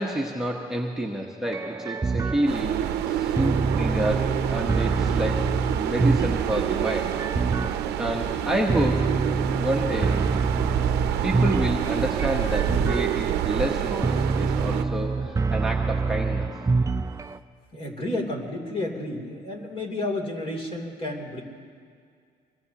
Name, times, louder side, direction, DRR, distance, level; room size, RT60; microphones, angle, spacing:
voice 1, 0.0-5.5 5.7-7.1 8.0-9.1 9.6-10.2 11.2-16.5, right 1 dB, 5° right, 0 dB, 1.1 m, -28 dB
sound 1, 1.5-17.4, right 4 dB, 20° right, 0.4 m, -27 dB
sound 2, 2.5-14.8, right 10 dB, 75° right, 0.7 m, -28 dB
voice 2, 17.7-21.4, left 1 dB, 35° left, 1 dB, 3.1 m, -31 dB
24.0 x 20.0 x 2.9 m, 2.2 s
cardioid pair, 110°, 17 cm